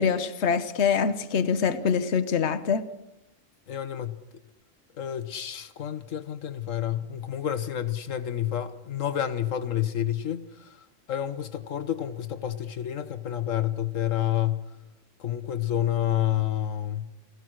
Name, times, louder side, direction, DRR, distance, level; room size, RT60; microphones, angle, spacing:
voice 1, 0.0-2.8, left 6 dB, 60° left, 1.4 m, -24 dB
voice 2, 3.7-4.2 5.0-14.7 15.2-17.1, left 11 dB, 80° left, 1.4 m, -29 dB
29.5 x 17.0 x 6.4 m
omnidirectional pair, 1.3 m